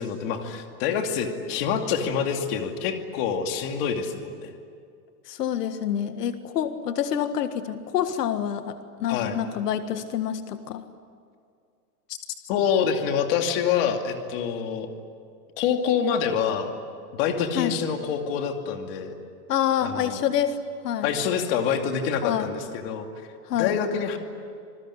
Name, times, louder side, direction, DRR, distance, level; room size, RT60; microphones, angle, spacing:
voice 1, 0.0-4.5 9.1-9.4 12.5-14.9 15.6-16.7 17.1-19.1 19.8-20.2 21.0-23.1 23.6-24.2, left 7 dB, 40° left, 4 dB, 2.6 m, -26 dB
voice 2, 5.3-10.8 17.6-17.7 19.5-20.6 20.8-21.1 22.2-22.5 23.5-23.8, left 9 dB, 85° left, 9 dB, 1.8 m, -27 dB
27.0 x 21.0 x 9.9 m, 2.3 s
supercardioid pair, 175°, 46 cm